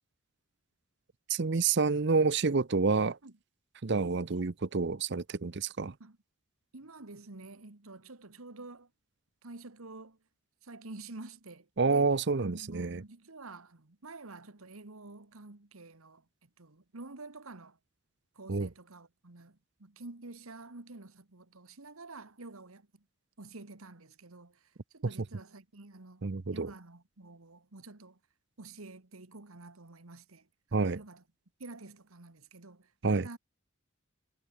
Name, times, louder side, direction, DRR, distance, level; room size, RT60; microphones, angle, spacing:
voice 1, 1.3-3.2 3.8-5.9 11.8-13.0 18.5-18.7 26.2-26.7 30.7-31.0 33.0-33.3, right 4 dB, 55° right, 0.7 m, -28 dB
voice 2, 6.7-8.9 9.4-10.2 10.6-17.8 18.3-23.0 23.4-28.2 28.6-31.2 31.6-33.4, right 2 dB, 80° right, 1.7 m, -49 dB
head